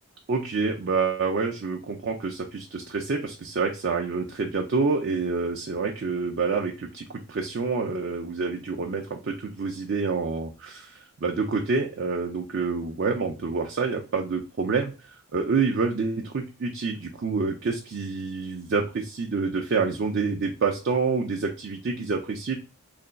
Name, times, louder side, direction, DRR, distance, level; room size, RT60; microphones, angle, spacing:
voice 1, 0.3-22.6, right 4 dB, 50° right, 1 dB, 0.4 m, -27 dB
3.2 x 2.2 x 3.8 m, 0.32 s
head